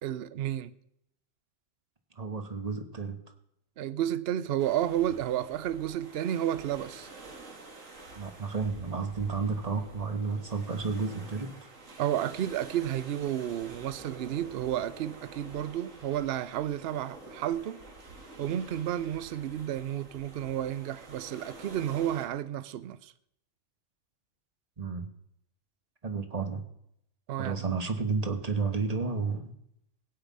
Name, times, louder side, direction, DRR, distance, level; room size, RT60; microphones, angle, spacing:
voice 1, 0.0-0.7 3.8-7.1 12.0-17.8 18.4-23.1 27.3-27.7, right 11 dB, 60° right, 0.8 m, -31 dB
voice 2, 2.2-3.2 8.1-11.5 24.8-25.1 26.0-26.6 27.4-29.5, right 4 dB, 30° right, 1.3 m, -31 dB
sound 1, 4.6-22.3, right 2 dB, 85° right, 2.3 m, -48 dB
16.5 x 5.8 x 8.5 m
omnidirectional pair, 1.3 m